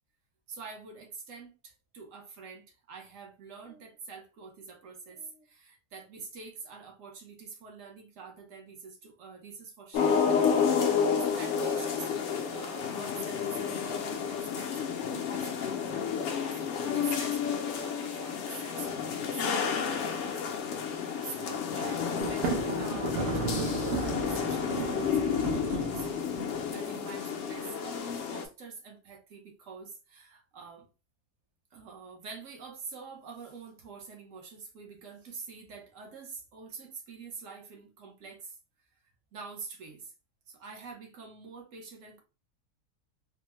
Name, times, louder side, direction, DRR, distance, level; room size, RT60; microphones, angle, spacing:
voice 1, 0.5-10.2 11.2-16.1 16.5-20.3 20.8-26.3 26.7-30.9 31.7-38.6 39.3-40.1 40.5-42.2, right 4 dB, 60° right, 1.1 m, -46 dB
sound 1, 9.9-28.5, left 7 dB, 70° left, 0.7 m, -30 dB
Thunder, 22.2-26.8, right 5 dB, 80° right, 0.5 m, -34 dB
3.4 x 2.0 x 3.0 m
omnidirectional pair, 1.7 m